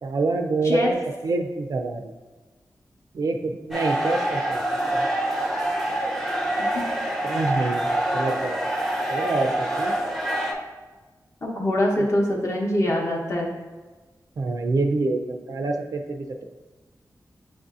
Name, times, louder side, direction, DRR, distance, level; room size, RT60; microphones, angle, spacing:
voice 1, 0.0-1.0 1.2-2.1 3.1-4.6 4.9-5.1 7.2-8.7 9.1-9.9 14.4-16.5, right 3 dB, 60° right, 4 dB, 0.4 m, -26 dB
sound 1, 3.7-10.5, right 1 dB, ahead, 0.5 m, -26 dB
voice 2, 11.4-13.5, left 1 dB, 45° left, -1 dB, 0.8 m, -23 dB
7.2 x 2.6 x 2.4 m, 1.3 s
wide cardioid pair, 110°, 7 cm